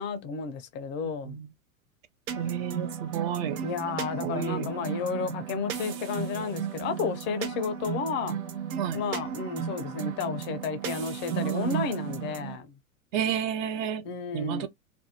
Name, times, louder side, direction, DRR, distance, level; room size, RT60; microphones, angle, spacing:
voice 1, 0.0-1.4 3.6-8.4 8.9-12.7 14.0-14.7, left 5 dB, 25° left, 0.5 m, -32 dB
sound 1, 2.3-12.6, right 7 dB, 75° right, 0.7 m, -35 dB
voice 2, 2.4-3.6 4.2-4.7 8.8-9.0 11.3-11.9 13.1-14.0 14.3-14.7, right 9 dB, 35° right, 0.4 m, -30 dB
2.5 x 2.1 x 2.7 m
hypercardioid pair, 105°, 42 cm